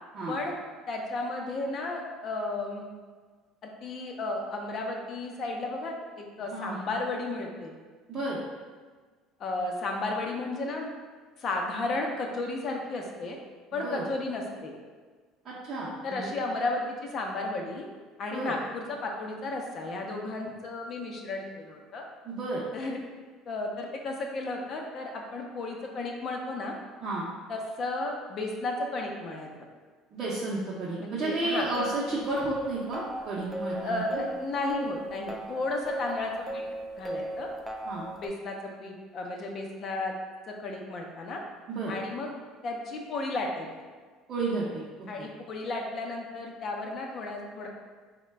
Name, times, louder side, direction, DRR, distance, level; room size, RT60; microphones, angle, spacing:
voice 1, 0.9-2.8 3.6-7.7 9.4-10.9 11.4-13.4 13.7-14.7 16.0-17.9 18.2-22.0 22.7-23.0 23.5-26.7 27.5-29.5 31.0-31.7 33.8-36.6 37.0-37.5 38.2-40.1 40.5-41.4 41.9-42.3 42.6-43.7 45.1-47.7, left 2 dB, 45° left, 1 dB, 0.6 m, -33 dB
voice 2, 8.1-8.4 13.8-14.0 15.4-16.3 18.3-18.5 22.3-22.6 27.0-27.2 30.1-34.2 37.9-38.0 41.7-41.9 44.3-44.8 45.2-45.3, right 2 dB, 45° right, -8 dB, 0.7 m, -32 dB
sound 1, 31.6-38.3, right 1 dB, 10° right, 0.3 m, -37 dB
3.8 x 2.2 x 3.3 m, 1.4 s
supercardioid pair, 110°, 0 cm